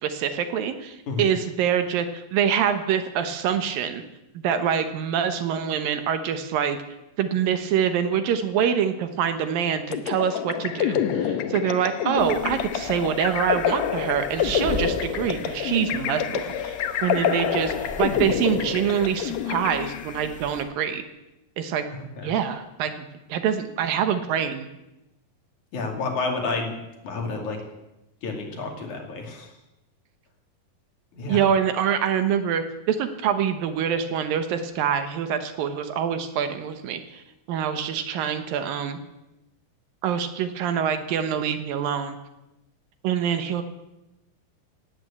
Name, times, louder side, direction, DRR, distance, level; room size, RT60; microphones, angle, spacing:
voice 1, 0.0-4.0 4.3-6.8 7.2-21.0 21.6-21.8 22.2-24.7 31.3-37.2 37.5-39.0 40.0-42.2 43.0-43.6, right 8 dB, 75° right, 9 dB, 2.7 m, -25 dB
sound 1, 9.9-20.3, left 9 dB, 75° left, 1.6 m, -27 dB
sound 2, 12.2-20.6, equal, 10° left, 0.5 m, -40 dB
voice 2, 25.7-26.8 27.0-27.6 28.2-29.5 31.1-31.5, left 3 dB, 55° left, 2 dB, 3.7 m, -30 dB
17.0 x 9.5 x 8.5 m, 0.95 s
omnidirectional pair, 4.3 m